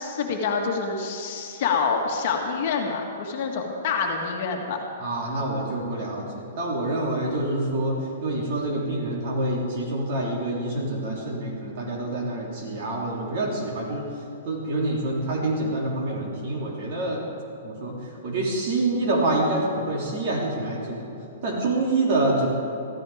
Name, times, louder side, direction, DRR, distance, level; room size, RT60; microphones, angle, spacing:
voice 1, 0.0-4.9, left 5 dB, 45° left, 1 dB, 1.8 m, -27 dB
voice 2, 5.0-14.1 14.4-17.2 17.6-17.9 18.2-21.1 21.4-22.5, right 2 dB, 40° right, -3 dB, 3.4 m, -26 dB
14.5 x 14.0 x 5.1 m, 2.8 s
hypercardioid pair, 165°, 0 cm